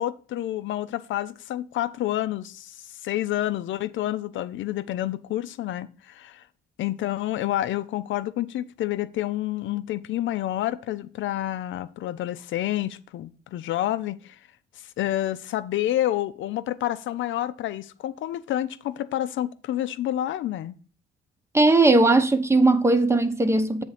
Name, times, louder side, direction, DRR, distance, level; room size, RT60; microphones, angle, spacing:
voice 1, 0.0-6.4 6.8-14.4 15.0-20.7, left 13 dB, 75° left, 0.6 m, -29 dB
voice 2, 21.5-23.8, right 2 dB, 15° right, 0.8 m, -18 dB
7.8 x 3.6 x 5.7 m
cardioid pair, 90°, 20 cm